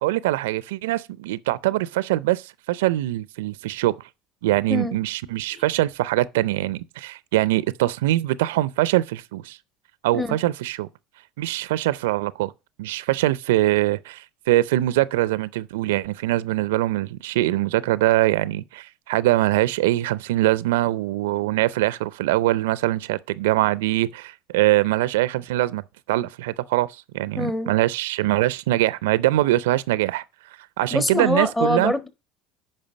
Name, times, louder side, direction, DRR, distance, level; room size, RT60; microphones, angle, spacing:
voice 1, 0.0-4.0 4.4-9.6 10.0-10.9 11.4-12.5 12.8-25.8 26.1-30.2 30.8-31.9, right 16 dB, 75° right, 0.4 m, -23 dB
voice 2, 4.7-5.0 5.5-5.6 10.1-10.4 27.4-27.7 30.9-32.1, left 2 dB, 20° left, 1.4 m, -24 dB
8.8 x 5.4 x 5.1 m
hypercardioid pair, 75°, 0 cm